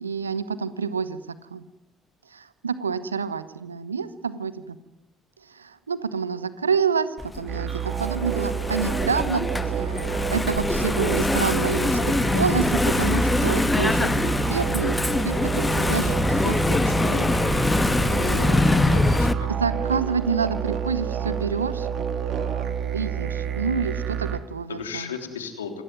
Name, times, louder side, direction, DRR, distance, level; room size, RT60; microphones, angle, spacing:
voice 1, 0.0-1.6 2.3-4.8 5.5-9.5 9.8-17.1 19.5-21.9 22.3-25.1, right 5 dB, 85° right, 15 dB, 1.1 m, -28 dB
Engine / Mechanisms, 7.2-19.3, left 2 dB, 15° left, 1.8 m, -23 dB
sound 1, 7.5-24.4, right 8 dB, 55° right, 3.0 m, -29 dB
voice 2, 17.9-19.5 24.7-25.7, left 7 dB, 80° left, 7 dB, 3.5 m, -35 dB
27.0 x 20.0 x 9.4 m, 0.88 s
figure-of-eight pair, 50°, 0 cm